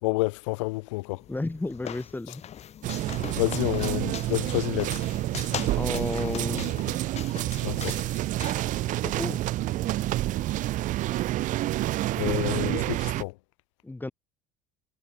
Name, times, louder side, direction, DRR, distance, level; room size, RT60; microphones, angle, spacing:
voice 1, 0.0-1.2 3.4-5.0 7.6-8.0 12.2-13.3, left 25 dB, 70° left, 3.0 m, -29 dB
sound 1, 1.1-9.3, left 10 dB, 45° left, 1.9 m, -40 dB
voice 2, 1.3-2.4 3.3-3.4 5.8-6.7 9.0-9.4 13.8-14.1, left 2 dB, 10° left, 3.7 m, -32 dB
sound 2, 2.8-13.2, right 15 dB, 55° right, 1.0 m, -28 dB
hypercardioid pair, 65°, 16 cm